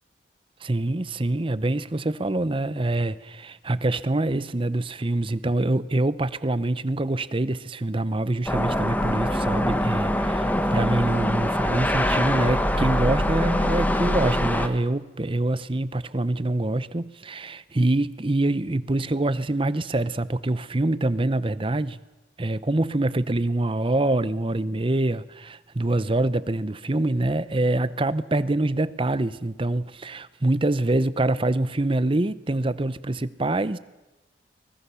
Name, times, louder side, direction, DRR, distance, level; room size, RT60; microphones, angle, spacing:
voice 1, 0.6-22.0 22.4-33.8, right 2 dB, 30° right, 16 dB, 0.7 m, -25 dB
sound 1, 8.5-14.7, left 1 dB, 10° left, 1.3 m, -24 dB
24.0 x 20.5 x 7.0 m, 1.1 s
head